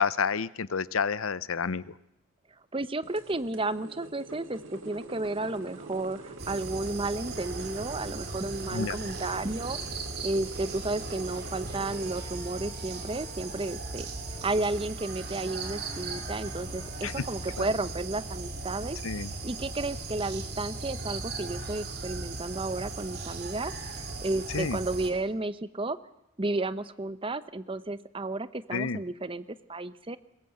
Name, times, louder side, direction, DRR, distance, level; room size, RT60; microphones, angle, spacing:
voice 1, 0.0-1.8 8.7-9.0 17.0-17.1 17.6-17.7 19.0-19.3 24.5-24.8 28.7-29.0, left 6 dB, 80° left, 18 dB, 0.7 m, -29 dB
voice 2, 2.7-9.8 10.2-14.1 14.4-19.0 19.4-23.7 24.2-26.0 26.4-29.4 29.7-30.2, right 2 dB, 25° right, 14 dB, 0.8 m, -32 dB
sound 1, 3.0-12.2, right 2 dB, 70° right, 2.7 m, -45 dB
sound 2, 6.4-25.1, right 3 dB, 50° right, 3.1 m, -38 dB
sound 3, 10.5-18.0, left 3 dB, 20° left, 3.2 m, -53 dB
22.0 x 20.5 x 7.9 m, 0.85 s
head